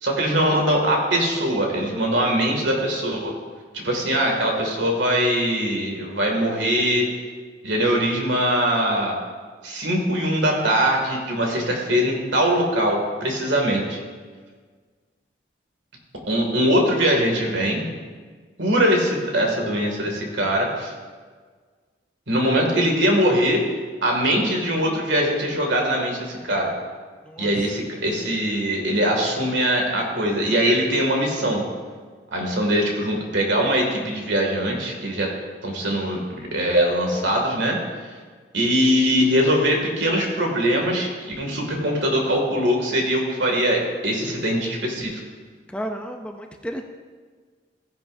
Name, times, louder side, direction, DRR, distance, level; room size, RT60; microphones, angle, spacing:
voice 1, 0.0-3.3 3.7-7.1 7.6-9.2 9.6-14.0 16.3-17.8 18.6-20.9 22.3-23.6 24.0-26.7 27.4-31.6 32.3-35.3 35.6-37.8 38.5-45.2, equal, 85° right, 1 dB, 2.3 m, -22 dB
voice 2, 27.2-27.6 45.7-46.8, equal, 5° left, 4 dB, 0.5 m, -32 dB
15.5 x 10.5 x 2.7 m, 1.5 s
head